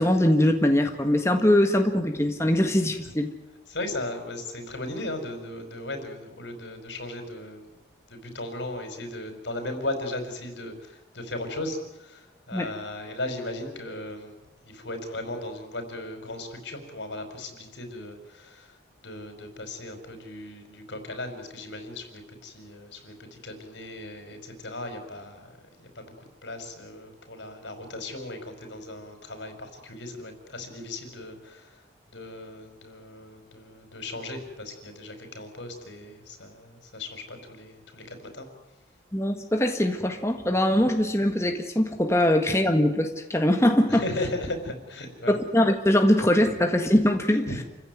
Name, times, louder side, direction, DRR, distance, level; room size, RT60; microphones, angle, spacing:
voice 1, 0.0-3.3 12.5-12.7 39.1-44.0 45.3-47.5, left 1 dB, 15° left, 4 dB, 1.7 m, -22 dB
voice 2, 3.7-7.7 8.1-14.3 14.6-31.8 32.1-38.5 43.9-45.3 47.5-47.6, left 1 dB, 85° left, 7 dB, 5.2 m, -37 dB
28.5 x 16.0 x 9.5 m, 0.99 s
head